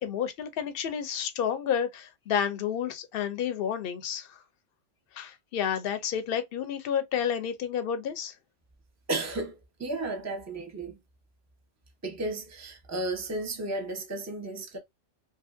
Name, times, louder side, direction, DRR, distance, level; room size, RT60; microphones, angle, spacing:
voice 1, 0.0-4.3 5.2-8.3, left 8 dB, 60° left, 0.7 m, -30 dB
voice 2, 9.1-11.0 12.0-14.8, right 2 dB, 20° right, 0.5 m, -33 dB
2.7 x 2.5 x 2.5 m
omnidirectional pair, 1.3 m